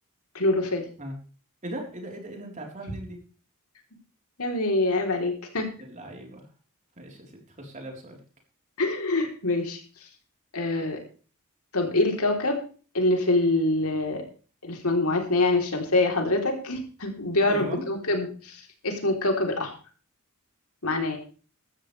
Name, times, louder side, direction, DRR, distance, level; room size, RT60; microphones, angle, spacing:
voice 1, 0.3-0.8 4.4-5.7 8.8-9.8 10.5-11.0 11.7-12.6 12.9-14.2 14.6-19.7 20.8-21.2, left 2 dB, 75° left, 2 dB, 3.6 m, -25 dB
voice 2, 1.6-3.2 5.8-6.5 7.0-8.2 17.5-17.9, right 1 dB, 35° right, 1 dB, 4.1 m, -38 dB
15.0 x 13.0 x 3.4 m, 0.38 s
head